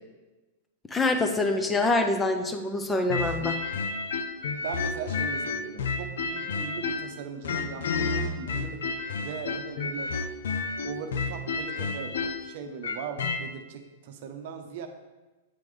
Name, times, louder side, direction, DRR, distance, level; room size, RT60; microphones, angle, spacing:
voice 1, 0.9-3.6, left 2 dB, 10° left, 6 dB, 0.5 m, -25 dB
sound 1, 3.1-7.1 7.4-13.4, left 4 dB, 80° left, 0.5 m, -30 dB
voice 2, 4.6-8.8 9.2-10.1 10.8-14.9, right 6 dB, 60° right, 6 dB, 0.7 m, -39 dB
8.3 x 3.8 x 3.2 m, 1.2 s
hypercardioid pair, 130°, 0 cm